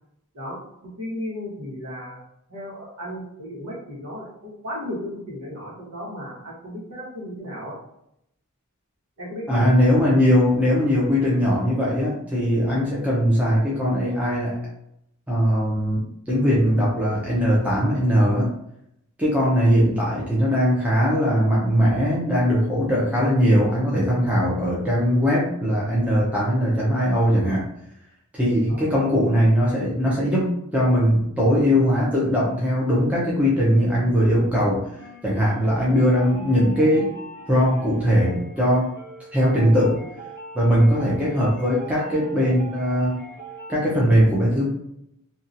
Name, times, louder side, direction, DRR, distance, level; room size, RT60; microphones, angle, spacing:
voice 1, 1.0-2.2 2.5-7.8 9.2-9.6 28.7-29.0 40.9-41.1, equal, 75° right, -5 dB, 1.1 m, -35 dB
voice 2, 9.5-14.6 15.3-18.5 19.2-27.7 28.3-34.8 35.2-37.1 37.5-38.9 39.3-40.0 40.5-43.1 43.7-44.7, equal, 5° right, -7 dB, 0.5 m, -20 dB
sound 1, 35.0-43.8, right 2 dB, 45° left, 0.6 m, -41 dB
2.8 x 2.2 x 2.5 m, 0.77 s
head